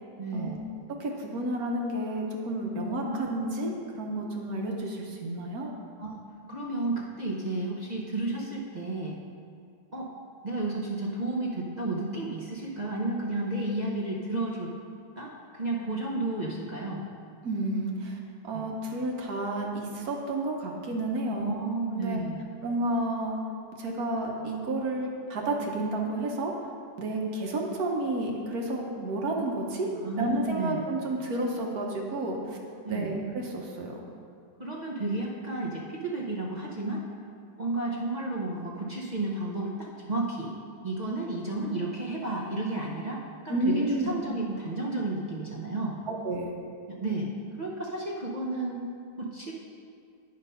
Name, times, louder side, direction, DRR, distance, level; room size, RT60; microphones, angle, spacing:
voice 1, 0.2-0.6 3.1-3.2 6.0-6.2 6.5-9.1 9.9-10.1 10.4-14.7 15.2-17.0 18.5-18.6 21.3-22.4 30.0-30.8 32.8-33.2 34.6-37.0 37.6-40.5 40.8-46.0 46.9-47.3 47.6-48.8 49.2-49.5, right 2 dB, 40° right, -4 dB, 0.6 m, -32 dB
voice 2, 1.0-5.7 17.4-18.2 18.4-21.6 21.9-22.2 22.6-23.4 23.8-26.5 27.0-29.9 30.2-32.6 32.9-34.0 43.5-44.1 46.1-46.5, right 1 dB, 60° right, 0 dB, 1.4 m, -31 dB
9.6 x 5.2 x 5.5 m, 2.3 s
omnidirectional pair, 1.9 m